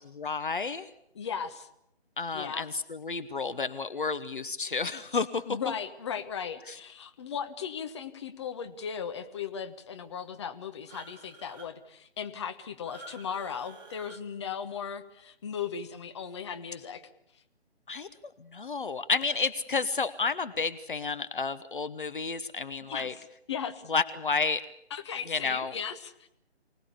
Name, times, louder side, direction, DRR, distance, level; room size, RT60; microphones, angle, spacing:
voice 1, 0.2-0.9 2.2-5.6 6.7-6.8 17.9-23.1 23.9-24.7 25.3-25.8, left 4 dB, 50° left, 12 dB, 1.0 m, -31 dB
voice 2, 1.1-1.7 2.3-2.7 5.5-17.0 22.9-23.1 23.5-23.9 24.9-26.3, left 7 dB, 25° left, 7 dB, 1.3 m, -37 dB
sound 1, 10.9-11.7 12.9-14.2, right 3 dB, 20° right, 1.3 m, -49 dB
25.0 x 19.0 x 8.4 m, 0.77 s
figure-of-eight pair, 145°, 32 cm